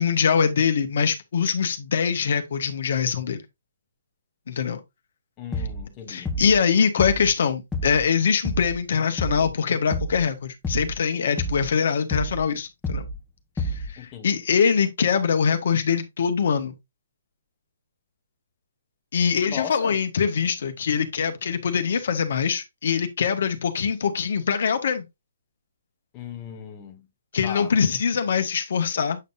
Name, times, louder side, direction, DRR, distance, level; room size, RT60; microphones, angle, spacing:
voice 1, 0.0-3.4 4.5-4.8 6.1-13.0 13.6-16.7 19.1-25.0 27.3-29.2, left 6 dB, 60° left, 1.5 m, -23 dB
voice 2, 5.4-6.3 14.0-14.4 19.5-20.0 26.1-27.0 27.4-27.7, left 9 dB, 25° left, 1.2 m, -37 dB
sound 1, 5.5-5.9 6.2-6.6 7.0-7.4 7.7-8.1 8.4-8.8 9.2-9.5 9.9-10.3 10.6-11.0 11.4-11.7 12.1-12.5 12.8-13.2 13.6-14.0, equal, 10° left, 1.1 m, -29 dB
8.2 x 5.4 x 2.6 m
hypercardioid pair, 140°, 0 cm